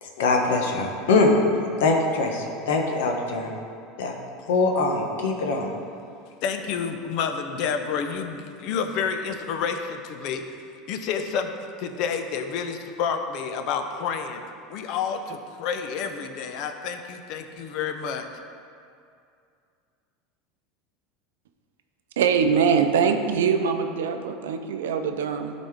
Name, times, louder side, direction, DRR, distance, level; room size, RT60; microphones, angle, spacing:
voice 1, 0.0-3.5 4.0-4.1 4.5-5.7, left 3 dB, 80° left, 2 dB, 1.1 m, -23 dB
voice 2, 6.4-10.5 10.9-14.4 14.7-18.3, left 6 dB, 60° left, 7 dB, 0.7 m, -29 dB
voice 3, 22.2-25.5, right 6 dB, 85° right, 6 dB, 0.5 m, -23 dB
12.5 x 4.2 x 3.6 m, 2.4 s
hypercardioid pair, 100°, 0 cm